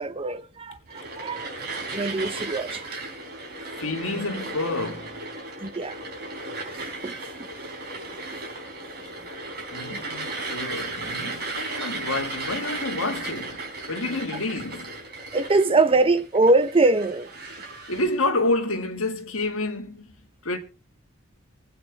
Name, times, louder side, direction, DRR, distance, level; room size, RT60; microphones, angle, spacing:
voice 1, 0.0-1.5 1.9-2.9 5.6-6.0 7.0-7.5 9.9-10.0 11.8-11.9 15.3-17.3, right 2 dB, 25° right, 0.6 m, -23 dB
sound 1, 0.9-18.2, right 2 dB, 50° right, 4.1 m, -35 dB
voice 2, 3.8-5.2 9.7-15.0 17.9-20.1 20.4-20.6, left 2 dB, 75° left, 1.9 m, -29 dB
23.5 x 8.6 x 3.4 m
head